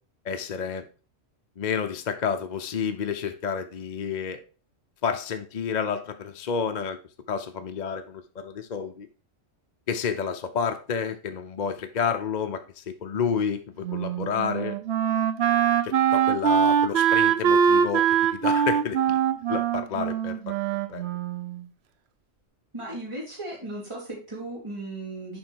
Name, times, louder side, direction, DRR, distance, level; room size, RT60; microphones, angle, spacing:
voice 1, 0.3-0.8 1.6-4.4 5.0-7.0 7.3-9.1 9.9-14.8 15.8-18.0 18.3-19.2 19.5-20.5 20.9-21.0, left 6 dB, 45° left, 7 dB, 0.7 m, -30 dB
Wind instrument woodwind instrument, 13.8-21.6, right 8 dB, 65° right, 0.9 m, -23 dB
voice 2, 22.7-25.4, right 2 dB, 25° right, -5 dB, 3.4 m, -36 dB
7.5 x 5.0 x 4.5 m, 0.36 s
omnidirectional pair, 1.3 m